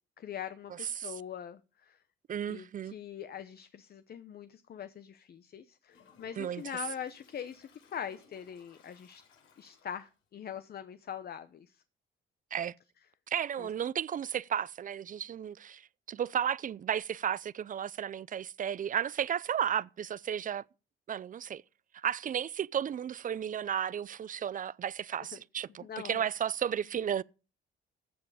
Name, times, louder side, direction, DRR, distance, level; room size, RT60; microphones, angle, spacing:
voice 1, 0.2-2.0 2.5-9.2 9.6-11.8 13.6-13.7 25.2-25.3 25.8-26.2, left 9 dB, 50° left, 0.8 m, -43 dB
voice 2, 2.3-2.9 6.4-6.6 12.5-12.7 13.3-20.6 21.1-21.6 21.9-27.2, right 9 dB, 45° right, 0.5 m, -33 dB
Toilet flush, 5.9-10.2, left 6 dB, 85° left, 4.2 m, -62 dB
14.0 x 7.5 x 4.9 m
cardioid pair, 90°, 20 cm